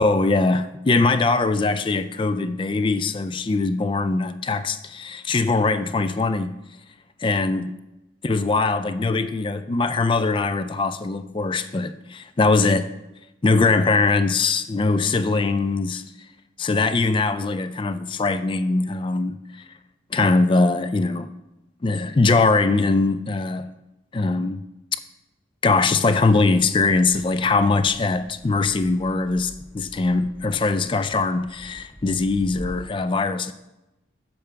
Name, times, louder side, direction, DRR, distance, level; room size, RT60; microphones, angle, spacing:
voice 1, 0.0-6.6 7.2-7.7 8.2-12.9 13.4-16.0 16.6-19.6 20.1-21.3 21.8-23.7 24.1-24.6 25.6-33.5, left 3 dB, 25° left, 0.3 m, -21 dB
sound 1, 26.2-32.8, equal, 5° right, 0.9 m, -45 dB
6.9 x 4.5 x 6.6 m
head